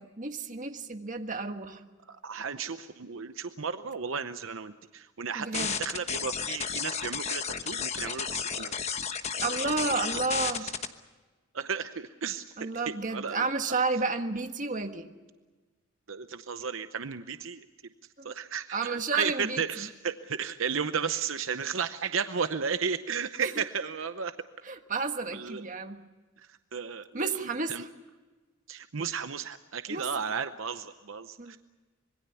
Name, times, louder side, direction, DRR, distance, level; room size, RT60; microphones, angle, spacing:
voice 1, 0.0-1.8 5.4-5.8 9.4-10.6 12.6-15.1 18.2-18.3 18.7-19.9 23.4-23.6 24.6-26.0 27.1-27.9 29.9-30.1 31.4-31.5, right 3 dB, 40° right, 6 dB, 1.5 m, -31 dB
voice 2, 2.1-8.7 9.5-10.2 10.6-10.7 11.5-12.5 13.1-13.5 16.1-17.7 18.2-24.3 25.3-25.6 26.4-27.8 28.7-31.6, right 6 dB, 70° right, 10 dB, 0.8 m, -34 dB
sound 1, 5.5-10.8, left 7 dB, 30° left, 1.1 m, -32 dB
26.0 x 21.5 x 7.0 m, 1.3 s
head